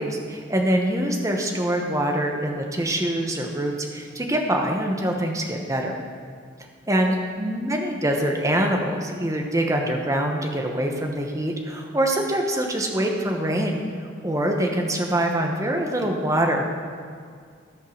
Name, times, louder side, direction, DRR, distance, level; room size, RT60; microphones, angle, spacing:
voice 1, 0.0-6.0 6.9-13.8 14.2-16.7, right 1 dB, 15° right, 2 dB, 1.0 m, -24 dB
14.0 x 5.5 x 6.4 m, 2.1 s
head